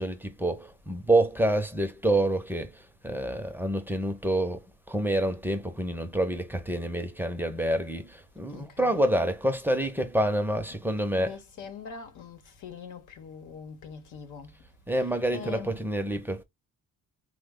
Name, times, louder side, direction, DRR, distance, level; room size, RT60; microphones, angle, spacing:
voice 1, 0.0-2.7 3.0-4.6 4.9-11.4 14.9-16.4, right 1 dB, 5° right, 0.6 m, -27 dB
voice 2, 8.5-9.0 10.7-10.8 11.2-14.5 15.0-15.1 15.3-15.7, left 6 dB, 90° left, 0.9 m, -43 dB
3.1 x 2.1 x 3.6 m
cardioid pair, 90°, 30 cm